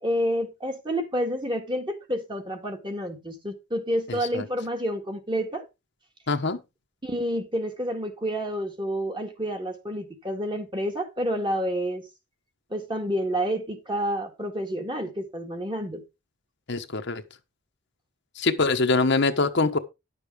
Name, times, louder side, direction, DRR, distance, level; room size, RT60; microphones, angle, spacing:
voice 1, 0.0-5.6 7.0-12.0 12.7-16.0, equal, 20° right, 1.9 m, -29 dB
voice 2, 4.1-4.4 6.3-6.6 16.7-17.2 18.4-19.8, left 3 dB, 50° left, 1.0 m, -24 dB
11.0 x 6.9 x 4.6 m
head